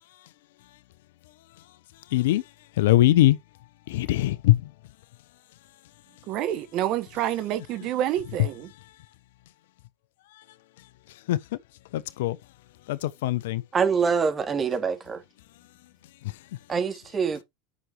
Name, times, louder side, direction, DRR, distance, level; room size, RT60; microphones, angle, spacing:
voice 1, 2.1-2.4 2.8-3.4 3.9-4.6 11.3-11.4 11.9-12.4 12.9-13.6, left 15 dB, 75° left, 0.8 m, -21 dB
voice 2, 6.3-8.7, right 12 dB, 55° right, 1.5 m, -28 dB
voice 3, 13.7-15.2 16.7-17.4, right 6 dB, 30° right, 3.5 m, -25 dB
11.0 x 6.3 x 3.2 m
hypercardioid pair, 80°, 0 cm